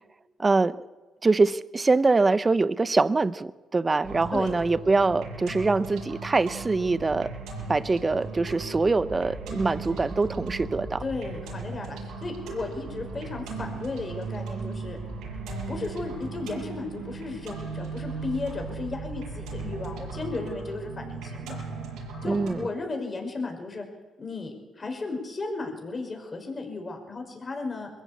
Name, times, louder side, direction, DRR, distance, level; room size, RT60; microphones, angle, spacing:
voice 1, 0.4-0.8 1.2-7.3 7.7-11.0 22.2-22.7, right 3 dB, 25° right, 16 dB, 0.8 m, -24 dB
sound 1, 4.0-22.6, right 4 dB, 90° right, 7.3 m, -37 dB
voice 2, 11.0-15.0 15.7-21.5 22.2-23.8 24.2-27.9, left 3 dB, 35° left, 3 dB, 5.5 m, -34 dB
22.0 x 15.0 x 8.4 m, 1.2 s
cardioid pair, 90°, 0 cm